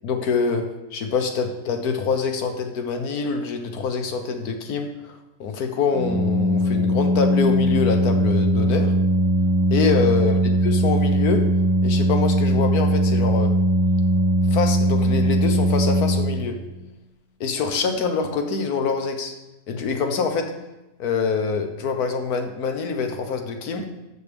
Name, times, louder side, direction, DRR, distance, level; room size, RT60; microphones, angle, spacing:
voice 1, 0.0-0.6 0.9-5.1 5.4-8.9 9.7-10.3 10.6-11.4 11.8-13.5 14.5-16.6 17.4-19.3 19.7-20.5 21.0-23.8, left 5 dB, 70° left, 5 dB, 1.4 m, -25 dB
Organ, 5.9-16.7, equal, 70° right, 1.1 m, -20 dB
13.5 x 6.8 x 3.5 m, 1.0 s
omnidirectional pair, 1.7 m